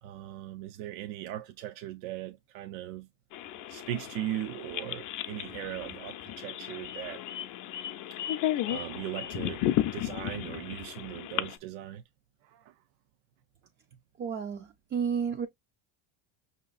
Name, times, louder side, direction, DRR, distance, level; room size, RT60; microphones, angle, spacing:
voice 1, 0.0-3.1 3.7-7.2 8.1-8.2 8.6-12.0 12.4-12.8, right 13 dB, 80° right, 0.6 m, -39 dB
sound 1, 3.3-11.6, left 12 dB, 40° left, 0.5 m, -34 dB
voice 2, 14.2-15.5, right 7 dB, 25° right, 0.3 m, -31 dB
5.6 x 2.9 x 2.3 m
cardioid pair, 125°, 48 cm